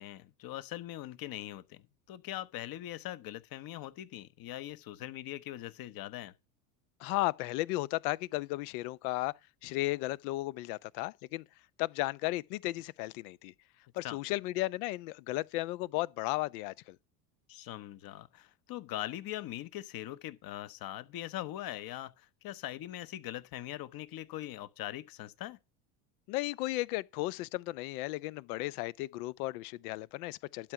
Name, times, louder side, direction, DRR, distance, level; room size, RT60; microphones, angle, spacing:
voice 1, 0.0-6.3 14.0-14.2 17.5-25.6, left 14 dB, 45° left, 1.2 m, -41 dB
voice 2, 7.0-9.3 9.6-11.4 11.8-13.5 13.9-17.0 26.3-30.7, left 19 dB, 65° left, 0.7 m, -34 dB
12.0 x 4.7 x 7.7 m
hypercardioid pair, 80°, 48 cm